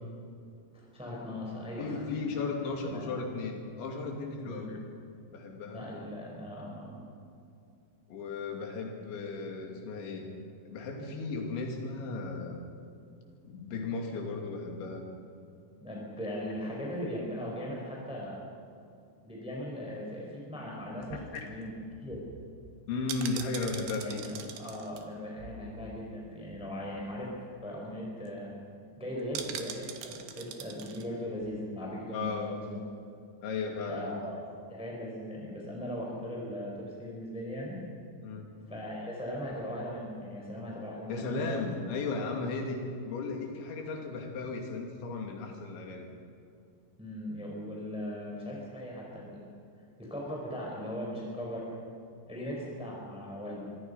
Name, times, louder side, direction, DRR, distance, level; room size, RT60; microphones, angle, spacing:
voice 1, 0.7-2.0 2.9-3.1 4.4-4.7 5.7-7.0 15.8-18.4 19.2-21.2 21.5-21.7 22.0-22.2 24.0-27.3 27.6-28.5 29.0-32.8 33.9-34.4 34.7-37.8 38.7-41.4 47.0-49.4 50.0-51.8 52.3-53.7, equal, ahead, -3 dB, 4.3 m, -39 dB
voice 2, 1.8-4.8 5.3-5.8 8.1-10.3 10.7-12.6 13.4-15.1 21.3-21.5 22.9-24.2 32.1-32.6 33.4-34.2 38.2-38.5 41.1-46.1, left 3 dB, 80° left, 2 dB, 5.0 m, -35 dB
sound 1, 21.0-26.3 26.6-26.7 26.9-27.2 27.6-27.7 27.9-28.3 29.3-31.1 31.4-31.5, right 8 dB, 75° right, 3.6 m, -43 dB
25.5 x 24.5 x 5.7 m, 2.5 s
omnidirectional pair, 5.2 m